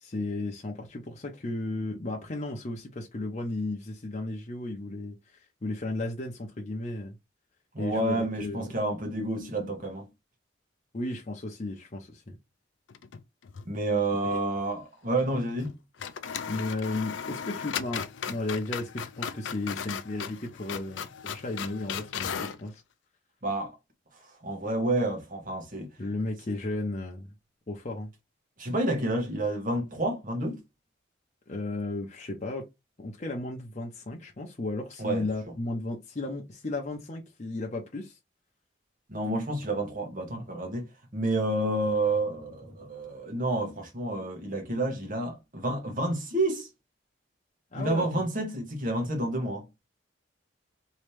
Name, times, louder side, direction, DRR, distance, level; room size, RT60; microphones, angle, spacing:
voice 1, 0.0-7.2 7.8-8.8 10.9-12.4 14.2-14.4 16.5-22.8 26.0-27.3 27.7-28.1 31.5-32.7 33.0-38.2 47.7-48.3, left 2 dB, 35° left, 0.7 m, -34 dB
voice 2, 7.7-10.1 13.6-15.8 23.4-23.7 24.4-25.9 28.6-30.6 35.0-35.3 39.1-46.7 47.7-49.7, right 2 dB, 45° right, 1.3 m, -29 dB
sound 1, 12.9-13.7 14.0-14.1 15.6-15.7 16.0-22.6, left 7 dB, 70° left, 0.4 m, -36 dB
3.1 x 2.8 x 3.2 m
head